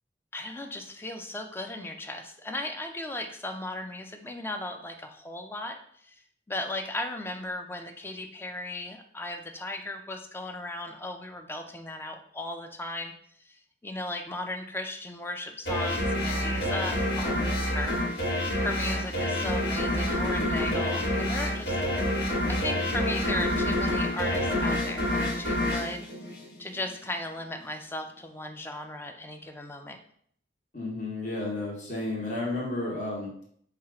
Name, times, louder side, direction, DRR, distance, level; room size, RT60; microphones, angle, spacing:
voice 1, 0.3-6.2 6.5-13.1 13.4-21.8 22.2-26.1 26.6-30.0, left 1 dB, 15° left, 5 dB, 0.4 m, -36 dB
sound 1, 15.7-26.9, left 1 dB, 85° left, 1.4 m, -28 dB
voice 2, 30.7-33.3, left 2 dB, 45° left, -4 dB, 1.2 m, -32 dB
4.4 x 2.4 x 4.8 m, 0.64 s
head